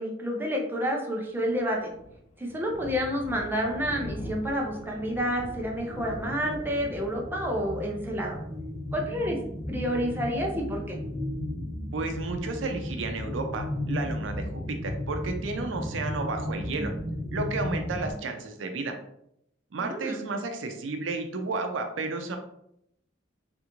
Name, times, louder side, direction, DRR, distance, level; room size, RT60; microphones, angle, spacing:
voice 1, 0.0-1.9 2.4-8.4 8.9-9.4 9.7-11.0 19.8-20.2, equal, 10° right, -1 dB, 0.5 m, -29 dB
Thunder, 1.4-10.6, left 1 dB, 40° left, 0.5 m, -42 dB
sound 1, 5.9-18.1, left 1 dB, 60° left, 1.2 m, -34 dB
voice 2, 11.9-16.9 17.3-18.9 19.7-22.4, right 3 dB, 90° right, 5 dB, 0.5 m, -32 dB
3.3 x 2.5 x 3.0 m, 0.75 s
head